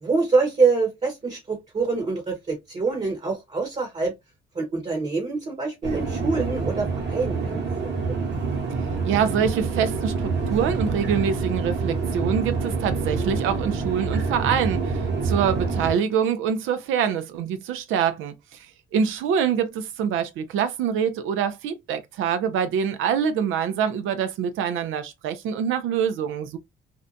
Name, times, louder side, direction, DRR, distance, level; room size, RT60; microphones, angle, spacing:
voice 1, 0.0-4.1 4.5-8.2, right 4 dB, 35° right, 1.0 m, -25 dB
sound 1, 5.8-15.9, right 4 dB, 60° right, 1.2 m, -27 dB
voice 2, 9.0-18.7 18.9-26.6, right 7 dB, 85° right, 0.5 m, -25 dB
2.6 x 2.1 x 2.5 m
cardioid pair, 90°, 20 cm